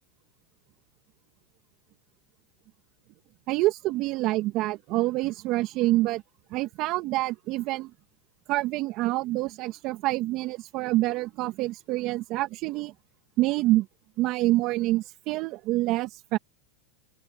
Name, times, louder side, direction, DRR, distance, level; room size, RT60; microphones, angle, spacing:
voice 1, 3.5-6.2 6.5-7.9 8.5-12.9 13.4-13.9 14.2-16.4, right 18 dB, 50° right, 1.8 m, -26 dB
open air
hypercardioid pair, 110°, 0 cm